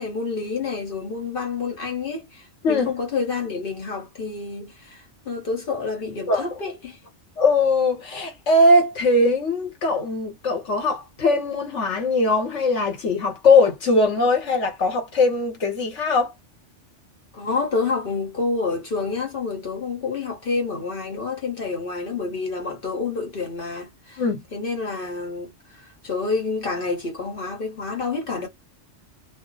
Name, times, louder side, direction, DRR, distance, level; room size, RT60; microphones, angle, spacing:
voice 1, 0.0-7.0 17.3-24.2 24.5-28.5, left 4 dB, 50° left, 1.2 m, -28 dB
voice 2, 7.4-16.3 24.2-24.4, left 2 dB, 75° left, 1.5 m, -20 dB
2.7 x 2.1 x 3.8 m
omnidirectional pair, 1.2 m